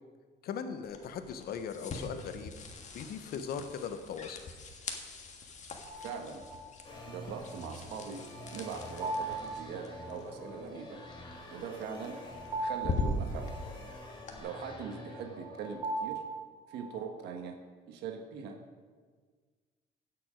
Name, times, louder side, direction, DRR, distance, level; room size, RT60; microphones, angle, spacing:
voice 1, 0.4-2.5 2.9-4.4, left 7 dB, 65° left, 8 dB, 1.0 m, -39 dB
sound 1, 0.8-14.4, left 2 dB, 45° left, 1.6 m, -42 dB
sound 2, 5.9-17.2, right 2 dB, 35° right, 1.6 m, -41 dB
voice 2, 6.0-6.5 7.1-8.2 8.5-11.0 11.5-12.2 12.6-13.5 14.4-16.2 16.7-17.6 17.9-18.6, right 6 dB, 80° right, 3 dB, 1.3 m, -41 dB
sound 3, 6.8-15.8, left 1 dB, 25° left, 2.0 m, -48 dB
16.5 x 6.1 x 5.1 m, 1.5 s
cardioid pair, 110°, 17 cm